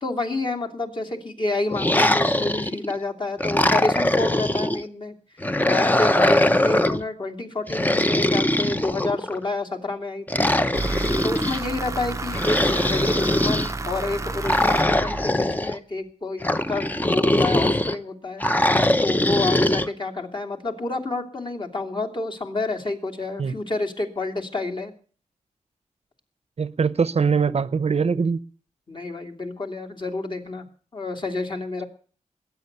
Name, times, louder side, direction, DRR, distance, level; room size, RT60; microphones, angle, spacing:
voice 1, 0.0-5.1 5.6-10.5 11.2-18.4 19.0-24.9 28.9-30.6 30.9-31.8, left 2 dB, 40° left, 2.7 m, -29 dB
sound 1, 1.7-2.9 3.4-4.8 5.4-7.0 7.7-9.4 10.3-11.6 12.3-13.7 14.4-15.8 16.4-17.9 18.4-19.9, left 1 dB, 15° left, 0.8 m, -21 dB
sound 2, 10.7-15.7, right 2 dB, 25° right, 0.7 m, -31 dB
voice 2, 26.6-28.4, right 5 dB, 55° right, 0.8 m, -22 dB
21.0 x 9.4 x 6.7 m
wide cardioid pair, 100°, 13 cm